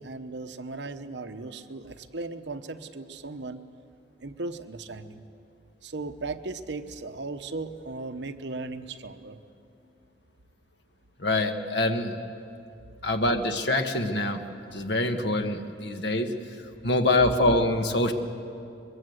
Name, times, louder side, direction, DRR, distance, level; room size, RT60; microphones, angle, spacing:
voice 1, 0.0-3.6 4.2-5.2 5.8-9.4, right 3 dB, 70° right, 9 dB, 1.0 m, -37 dB
voice 2, 11.2-12.2 13.0-14.4 14.7-16.3 16.8-18.1, left 2 dB, 65° left, 6 dB, 1.6 m, -25 dB
23.0 x 22.0 x 8.0 m, 2.7 s
head